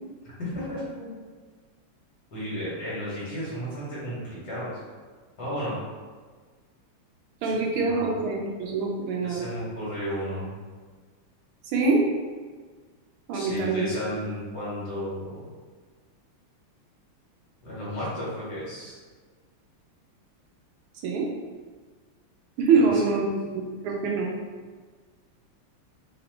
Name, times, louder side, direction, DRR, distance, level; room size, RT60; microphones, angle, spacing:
voice 1, 0.4-1.1 2.3-4.8 5.4-5.7 7.5-7.6 7.9-8.1 9.2-10.5 13.3-15.4 17.6-18.9 22.7-23.0, equal, 50° left, -9 dB, 1.9 m, -33 dB
voice 2, 7.4-9.4 11.7-12.0 13.3-13.8 21.0-21.3 22.6-24.3, right 4 dB, 80° right, -1 dB, 1.5 m, -24 dB
4.0 x 3.0 x 3.0 m, 1.5 s
omnidirectional pair, 2.4 m